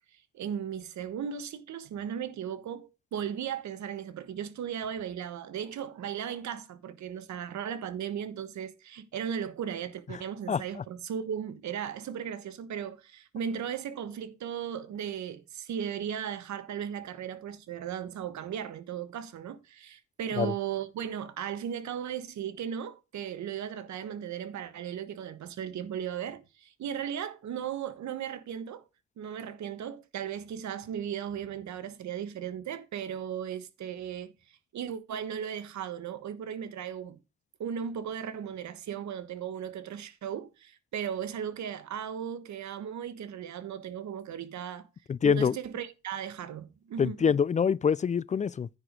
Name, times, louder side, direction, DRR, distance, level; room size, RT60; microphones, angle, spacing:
voice 1, 0.1-28.8 29.2-37.2 37.6-44.9 45.2-47.3, right 8 dB, 65° right, 1.3 m, -36 dB
voice 2, 10.5-10.8 20.4-20.5 45.1-45.6 47.0-48.7, left 6 dB, 25° left, 0.3 m, -25 dB
9.8 x 4.9 x 5.2 m
cardioid pair, 90°, 30 cm